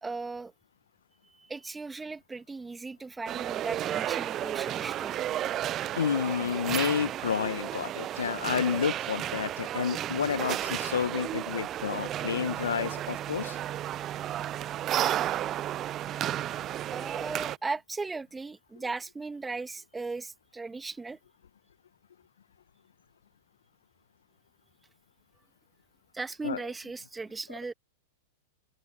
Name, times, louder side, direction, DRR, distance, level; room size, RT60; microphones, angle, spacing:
voice 1, 0.0-0.5 1.2-5.1 16.9-21.2 26.1-27.7, right 3 dB, 10° right, 2.1 m, -37 dB
sound 1, 3.3-17.6, right 12 dB, 35° right, 0.4 m, -33 dB
voice 2, 5.9-13.6 26.4-26.6, left 7 dB, 75° left, 1.2 m, -30 dB
open air
hypercardioid pair, 100°, 0 cm